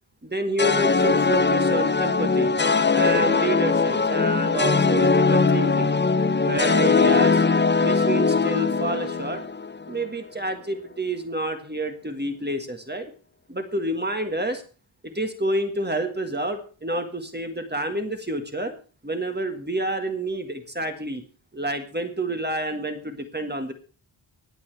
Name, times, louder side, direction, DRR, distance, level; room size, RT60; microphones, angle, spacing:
voice 1, 0.2-2.5 2.9-5.9 6.4-7.4 7.8-9.4 9.9-13.1 13.5-14.6 15.0-18.7 19.0-21.2 21.5-23.7, right 1 dB, 20° right, 5 dB, 1.7 m, -28 dB
sound 1, 0.6-9.9, left 4 dB, 25° left, 0.5 m, -20 dB
25.0 x 8.4 x 3.4 m, 0.38 s
wide cardioid pair, 95°, 48 cm